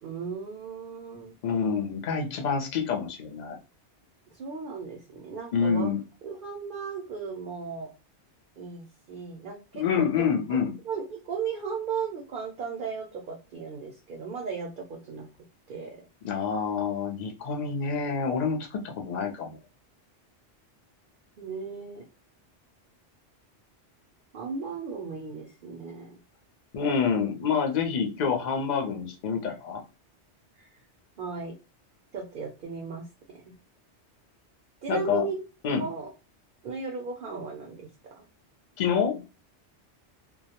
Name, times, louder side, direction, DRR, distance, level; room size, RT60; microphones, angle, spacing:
voice 1, 0.0-1.3 4.3-5.9 6.2-7.9 8.6-10.6 10.8-15.3 15.7-16.0 21.4-22.1 24.3-26.2 30.6-30.7 31.2-31.6 32.1-33.0 33.4-33.5 34.8-35.4 35.8-36.1 36.6-37.9 38.2-38.3, right 5 dB, 60° right, 2 dB, 0.6 m, -36 dB
voice 2, 1.4-3.6 5.5-6.0 9.7-10.7 16.2-19.6 26.7-29.8 34.9-35.2 35.6-35.8 38.8-39.2, left 6 dB, 55° left, 2 dB, 0.5 m, -27 dB
2.2 x 2.0 x 2.7 m, 0.30 s
omnidirectional pair, 1.2 m